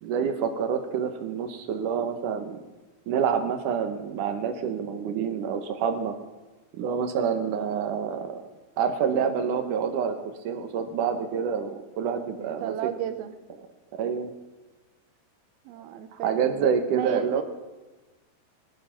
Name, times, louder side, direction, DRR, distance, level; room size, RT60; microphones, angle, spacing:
voice 1, 0.0-2.6 3.1-6.1 6.7-8.4 8.8-10.2 10.4-12.9 14.0-14.3 16.2-17.4, right 7 dB, 65° right, 8 dB, 2.3 m, -27 dB
voice 2, 12.4-13.3 15.7-16.4 16.9-17.4, right 10 dB, 85° right, 10 dB, 2.9 m, -33 dB
18.0 x 12.0 x 5.8 m, 1.2 s
omnidirectional pair, 4.4 m